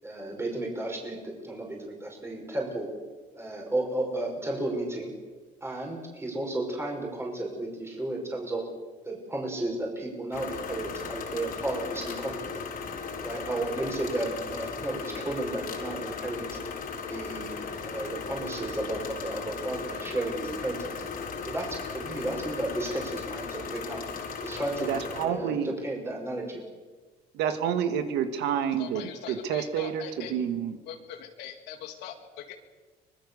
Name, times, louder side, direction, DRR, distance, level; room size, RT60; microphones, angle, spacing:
voice 1, 0.0-2.9 3.3-5.1 5.6-8.6 9.0-12.5 13.2-16.4 17.0-17.6 17.9-20.9 21.4-24.0 24.4-24.9 25.2-25.6 25.8-26.6, right 2 dB, 15° right, 0 dB, 5.4 m, -33 dB
sound 1, 10.3-25.3, left 5 dB, 60° left, 4.2 m, -37 dB
voice 2, 24.8-25.7 27.3-30.8, right 8 dB, 90° right, 9 dB, 2.1 m, -29 dB
voice 3, 28.8-30.3 30.9-32.5, left 9 dB, 90° left, 4 dB, 2.3 m, -42 dB
24.5 x 20.5 x 6.9 m, 1.4 s
cardioid pair, 110°, 17 cm